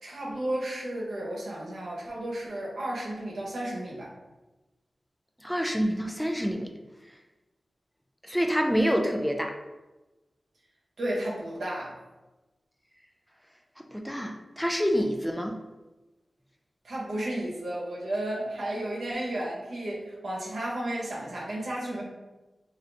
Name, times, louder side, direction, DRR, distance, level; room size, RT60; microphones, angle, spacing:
voice 1, 0.0-4.1 11.0-11.9 16.8-22.0, right 1 dB, 90° right, -4 dB, 0.9 m, -33 dB
voice 2, 5.4-6.7 8.3-9.5 13.9-15.6, equal, 5° left, 3 dB, 0.3 m, -27 dB
2.6 x 2.6 x 3.3 m, 1.1 s
wide cardioid pair, 65°, 0 cm